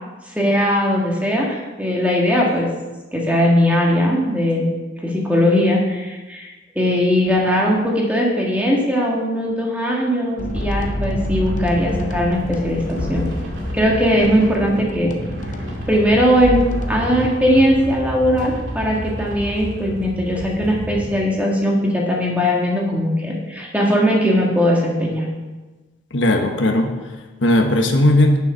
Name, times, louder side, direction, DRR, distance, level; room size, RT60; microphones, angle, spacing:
voice 1, 0.3-2.7 3.1-4.7 5.0-6.5 6.8-13.3 13.7-15.1 15.9-16.6 16.9-25.3, equal, 10° right, -2 dB, 1.8 m, -19 dB
sound 1, 10.4-17.3, left 1 dB, 40° left, 0.8 m, -28 dB
sound 2, 10.5-21.1, equal, 85° right, 2.4 m, -31 dB
voice 2, 26.1-28.4, left 1 dB, 85° left, 4 dB, 1.2 m, -17 dB
9.6 x 7.1 x 5.6 m, 1.2 s
head